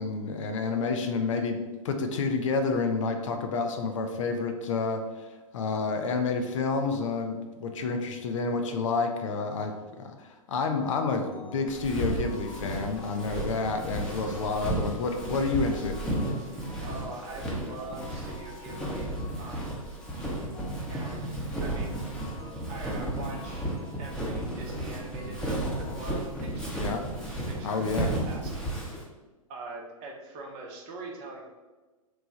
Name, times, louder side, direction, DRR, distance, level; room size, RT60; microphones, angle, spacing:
voice 1, 0.0-16.0 26.8-27.0 27.6-28.1, left 4 dB, 60° left, 6 dB, 0.5 m, -29 dB
sound 1, 11.3-26.1, left 4 dB, 45° left, 0.9 m, -50 dB
Walk footsteps, 11.7-29.0, right 1 dB, 5° left, 0.8 m, -33 dB
voice 2, 16.8-19.1 19.4-19.8 20.9-22.0 22.7-23.7 24.0-26.7 27.5-28.7 29.5-31.5, right 2 dB, 35° right, 0 dB, 0.7 m, -43 dB
3.1 x 2.2 x 3.9 m, 1.2 s
figure-of-eight pair, 105°, 18 cm